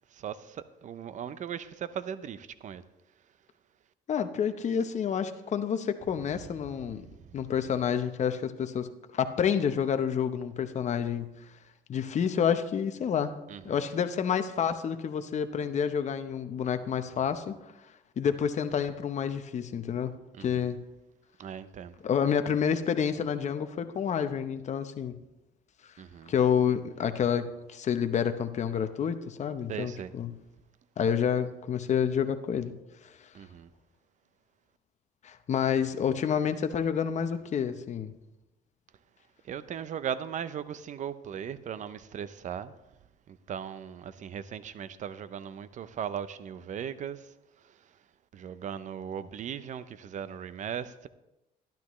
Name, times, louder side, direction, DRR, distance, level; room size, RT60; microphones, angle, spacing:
voice 1, 0.1-2.8 13.5-13.6 20.4-20.7 21.4-21.9 26.0-26.3 29.7-30.1 33.3-33.7 39.5-42.7 43.3-47.2 48.3-51.1, right 8 dB, 45° right, 0.6 m, -38 dB
voice 2, 4.1-7.1 7.3-8.9 9.1-11.3 11.9-13.3 13.6-17.5 18.2-20.1 20.4-20.8 22.0-25.1 26.3-30.4 31.0-32.7 35.2-38.1, left 7 dB, 45° left, 0.8 m, -29 dB
12.0 x 12.0 x 3.1 m
cardioid pair, 110°, 17 cm